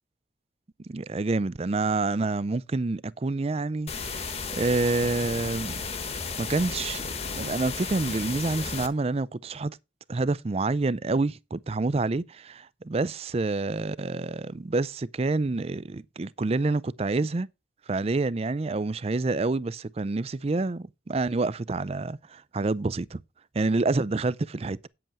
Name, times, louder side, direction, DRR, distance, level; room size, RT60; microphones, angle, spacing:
voice 1, 0.8-4.2 4.5-5.8 6.4-7.0 7.3-9.8 10.1-17.5 17.9-23.2 23.5-24.9, right 3 dB, 35° right, 0.4 m, -28 dB
sound 1, 3.9-8.9, left 5 dB, 35° left, 1.3 m, -34 dB
9.0 x 7.9 x 4.6 m
head